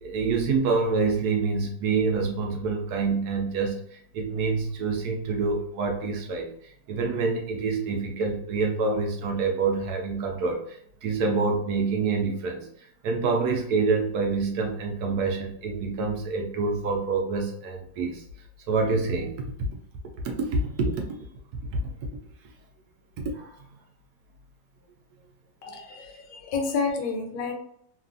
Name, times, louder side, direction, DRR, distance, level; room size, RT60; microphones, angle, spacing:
voice 1, 0.0-12.7 13.0-18.2 18.7-19.3 19.6-19.7 20.2-21.2 21.7-21.9 23.2-23.6 25.7-25.8, right 4 dB, 70° right, 2 dB, 1.0 m, -27 dB
voice 2, 25.6-27.5, left 4 dB, 80° left, 4 dB, 1.3 m, -30 dB
3.2 x 2.4 x 2.4 m, 0.67 s
omnidirectional pair, 1.9 m